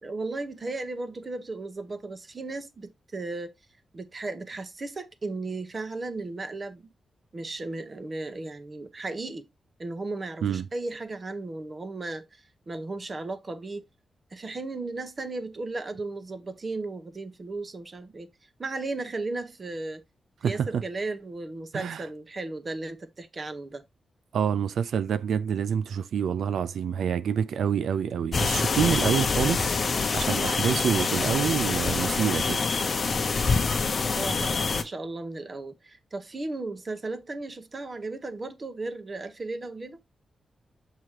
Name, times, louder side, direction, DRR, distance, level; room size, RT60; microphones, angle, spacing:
voice 1, 0.0-3.5 3.9-6.9 7.3-9.5 9.8-13.8 14.3-18.3 18.6-20.0 20.4-23.8 34.2-40.0, right 2 dB, 30° right, 1.0 m, -35 dB
voice 2, 20.4-20.8 21.7-22.0 24.3-29.7 30.1-32.6, right 8 dB, 90° right, 0.4 m, -27 dB
sound 1, 28.3-34.8, left 4 dB, 45° left, 0.8 m, -26 dB
7.4 x 3.0 x 4.8 m
wide cardioid pair, 140°, 0 cm